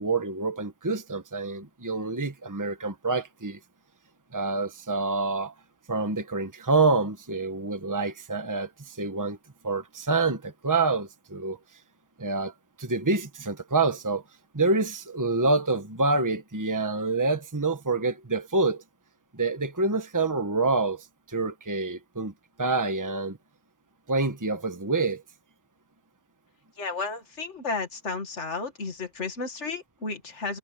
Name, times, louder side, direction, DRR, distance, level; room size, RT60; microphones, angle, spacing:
voice 1, 0.0-3.6 4.3-5.5 5.9-9.4 9.6-11.6 12.2-12.5 12.8-14.2 14.5-18.8 19.3-22.3 22.6-23.4 24.1-25.2, right 3 dB, 15° right, 1.3 m, -27 dB
voice 2, 26.8-30.6, left 3 dB, 75° left, 2.5 m, -33 dB
omnidirectional pair, 1.2 m